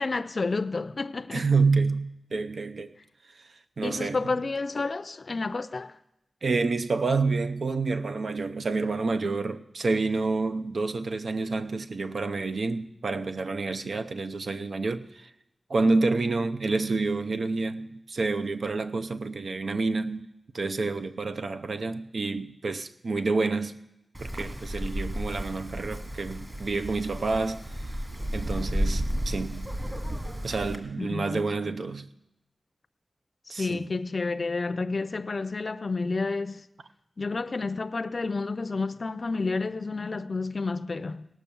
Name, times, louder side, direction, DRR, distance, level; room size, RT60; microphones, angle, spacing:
voice 1, 0.0-1.5 3.8-5.9 31.0-31.4 33.6-36.6 37.2-41.3, left 3 dB, 55° left, 0.4 m, -30 dB
voice 2, 1.3-2.9 3.8-4.4 6.4-15.3 15.7-20.3 20.5-23.8 24.2-27.6 28.3-29.7 30.4-32.1 33.5-33.8, right 3 dB, 75° right, 0.6 m, -28 dB
Wind, 24.1-30.8, equal, 25° right, 2.0 m, -32 dB
18.0 x 6.2 x 7.0 m
wide cardioid pair, 70°, 0 cm